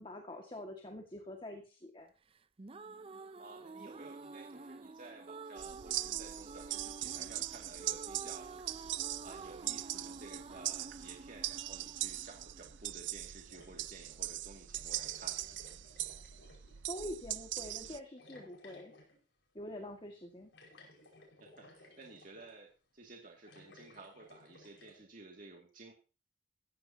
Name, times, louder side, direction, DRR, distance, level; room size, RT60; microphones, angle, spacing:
voice 1, 0.0-2.1 16.8-18.9 19.5-20.5, left 1 dB, 30° left, 3 dB, 1.9 m, -45 dB
sound 1, 2.4-13.4, right 3 dB, 30° right, 0.5 m, -49 dB
voice 2, 3.4-15.6 21.4-25.9, right 3 dB, 50° right, 0 dB, 2.4 m, -54 dB
sound 2, 5.6-18.0, right 14 dB, 85° right, 0.5 m, -41 dB
sound 3, 13.5-14.1 14.9-16.8 18.2-19.2 20.5-22.6 23.4-25.0, left 2 dB, 80° left, 5.4 m, -59 dB
15.5 x 14.5 x 2.9 m, 0.33 s
head